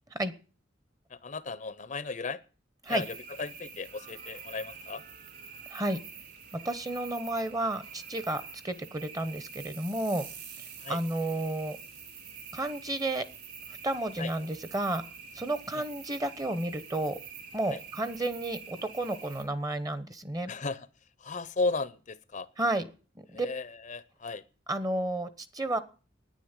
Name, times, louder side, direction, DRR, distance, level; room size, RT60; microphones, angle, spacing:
voice 1, 1.1-2.4 2.9-5.0 10.8-11.0 14.2-14.3 15.7-15.8 17.7-17.8 20.5-20.9 21.2-22.5 23.3-24.4, left 3 dB, 40° left, 16 dB, 0.7 m, -35 dB
sound 1, 2.8-19.4, right 6 dB, 50° right, 3.9 m, -46 dB
voice 2, 6.5-10.2 10.9-11.8 12.5-13.2 13.8-15.0 15.3-17.2 17.5-20.5 22.6-22.9 23.3-23.5 24.7-25.8, right 1 dB, 20° right, 13 dB, 1.0 m, -31 dB
10.5 x 9.6 x 9.7 m, 0.38 s
head